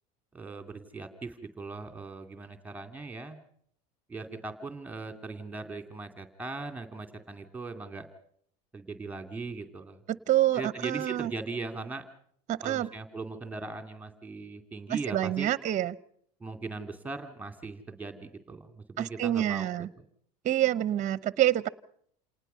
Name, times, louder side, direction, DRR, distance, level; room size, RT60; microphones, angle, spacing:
voice 1, 0.3-3.4 4.1-8.1 8.7-10.0 10.5-12.0 12.6-15.5 16.4-19.9, right 3 dB, 10° right, 7 dB, 2.4 m, -39 dB
voice 2, 10.1-11.3 12.5-12.9 14.9-15.9 19.0-19.9 20.4-21.7, right 13 dB, 40° right, 18 dB, 0.8 m, -27 dB
28.0 x 19.0 x 5.7 m, 0.65 s
supercardioid pair, 95°, 19 cm